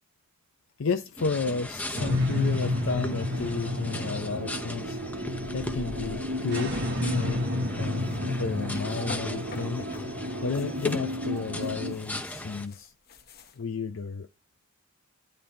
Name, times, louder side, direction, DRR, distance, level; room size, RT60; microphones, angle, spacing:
voice 1, 0.8-5.0 5.5-7.4 7.7-9.9 10.4-12.9 13.6-14.3, left 4 dB, 80° left, 0.6 m, -32 dB
sound 1, 1.2-12.7, left 1 dB, 5° left, 0.7 m, -38 dB
sound 2, 2.0-11.9, left 1 dB, 55° right, 1.3 m, -31 dB
sound 3, 8.0-10.1 10.4-13.6, left 3 dB, 50° left, 1.1 m, -47 dB
10.0 x 4.0 x 4.2 m
head